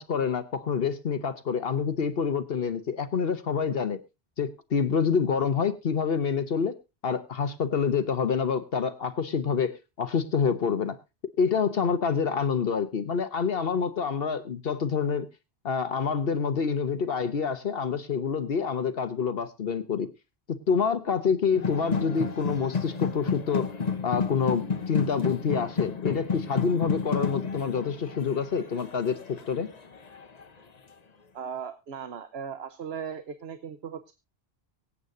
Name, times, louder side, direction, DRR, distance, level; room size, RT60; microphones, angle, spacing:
voice 1, 0.0-4.0 4.4-6.8 7.0-11.0 11.4-15.3 15.6-20.1 20.5-23.7 24.0-29.7, left 6 dB, 65° left, 11 dB, 1.2 m, -27 dB
sound 1, 21.5-30.4, left 5 dB, 40° left, 1.1 m, -31 dB
voice 2, 31.3-34.1, right 7 dB, 80° right, 11 dB, 1.2 m, -37 dB
24.0 x 8.5 x 2.6 m, 0.26 s
omnidirectional pair, 1.1 m